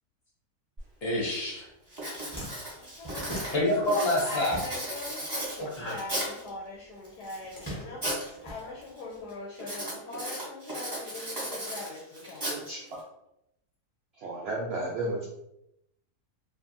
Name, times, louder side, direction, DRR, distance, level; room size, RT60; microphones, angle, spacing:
Writing, 0.8-0.9 1.3-1.6 1.9-6.5 7.0-8.3 8.6-9.0 9.6-13.0, right 1 dB, 25° right, 0.6 m, -36 dB
voice 1, 1.0-1.7 3.5-4.6 5.6-6.0, left 1 dB, 45° left, -5 dB, 0.9 m, -27 dB
sound 1, 1.6-1.7 2.0-5.1 5.4-6.6 7.2-9.3, equal, 20° left, 0.7 m, -41 dB
voice 2, 2.7-3.5 4.1-8.0 8.4-12.4, left 2 dB, 85° left, -2 dB, 1.1 m, -41 dB
voice 3, 12.5-12.8 14.2-15.3, right 2 dB, 85° right, -3 dB, 0.5 m, -33 dB
2.6 x 2.5 x 2.5 m, 0.83 s
omnidirectional pair, 1.7 m